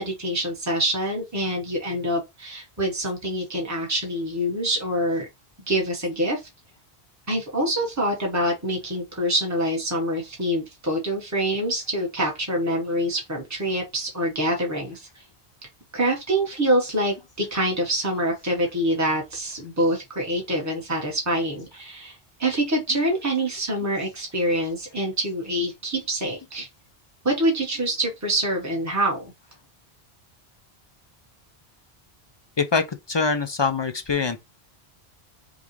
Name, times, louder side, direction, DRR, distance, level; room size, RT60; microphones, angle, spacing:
voice 1, 0.0-5.3 5.7-6.4 7.3-15.1 15.9-26.7 27.2-29.3, right 1 dB, 15° right, 1.3 m, -25 dB
voice 2, 33.1-34.4, left 4 dB, 45° left, 0.3 m, -23 dB
5.4 x 2.4 x 3.1 m
omnidirectional pair, 1.1 m